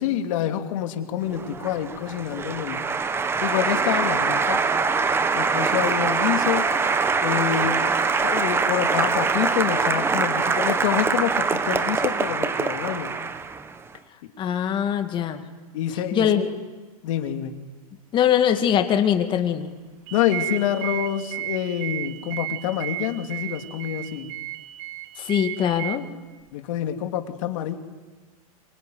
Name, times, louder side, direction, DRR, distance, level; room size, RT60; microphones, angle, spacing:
voice 1, 0.0-2.8 3.4-4.6 5.3-6.7 7.2-7.8 8.2-13.2 14.2-14.3 15.7-16.5 17.0-17.6 20.1-24.3 26.5-27.8, left 11 dB, 55° left, 6 dB, 3.0 m, -27 dB
Applause, 1.3-13.8, right 4 dB, 10° right, 1.2 m, -23 dB
voice 2, 14.4-15.4 16.1-16.4 18.1-19.7 25.2-26.1, left 9 dB, 25° left, 7 dB, 2.4 m, -22 dB
sound 1, 20.1-26.0, right 17 dB, 45° right, 2.5 m, -33 dB
25.5 x 24.5 x 9.7 m, 1.3 s
hypercardioid pair, 140°, 19 cm